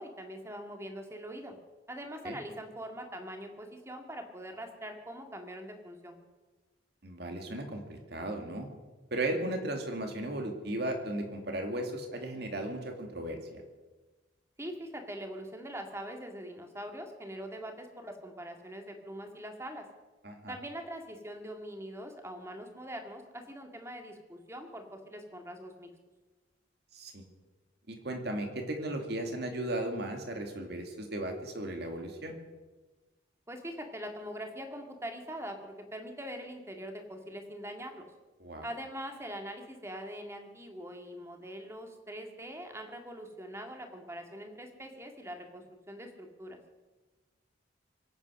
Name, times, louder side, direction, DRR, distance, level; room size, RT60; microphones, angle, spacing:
voice 1, 0.0-1.6 1.9-6.2 14.6-19.9 20.5-25.9 33.5-38.1 38.6-46.6, equal, 15° right, 4 dB, 2.0 m, -43 dB
voice 2, 7.0-8.7 9.1-13.6 20.2-20.5 26.9-27.2 27.9-32.4 38.4-38.6, right 1 dB, 60° right, 3 dB, 2.6 m, -36 dB
24.0 x 8.9 x 6.4 m, 1.2 s
head